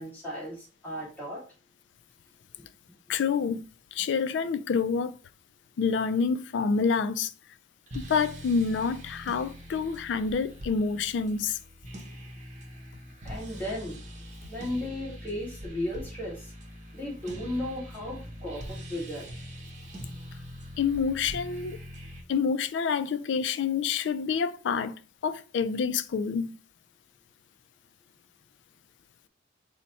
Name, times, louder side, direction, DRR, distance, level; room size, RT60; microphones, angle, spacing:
voice 1, 0.0-1.4 13.2-14.0 14.5-16.5 16.9-19.3, left 1 dB, 10° left, 1.6 m, -35 dB
voice 2, 3.1-3.7 3.9-5.1 5.8-7.3 7.9-11.6 20.8-21.8 22.3-24.9 25.2-26.5, left 5 dB, 80° left, 0.3 m, -27 dB
sound 1, 7.9-22.2, equal, 40° right, 0.8 m, -43 dB
4.1 x 2.1 x 4.1 m
head